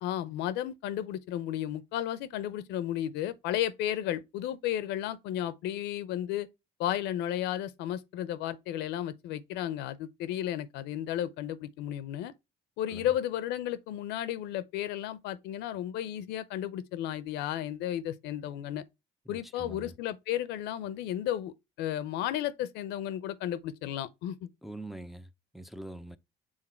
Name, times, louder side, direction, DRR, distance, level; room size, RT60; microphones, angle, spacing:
voice 1, 0.0-6.5 6.8-12.3 12.8-18.8 19.3-24.5, left 11 dB, 90° left, 0.6 m, -33 dB
voice 2, 19.3-19.9 24.6-26.2, right 1 dB, ahead, 0.4 m, -44 dB
6.4 x 3.7 x 4.3 m
cardioid pair, 110°, 17 cm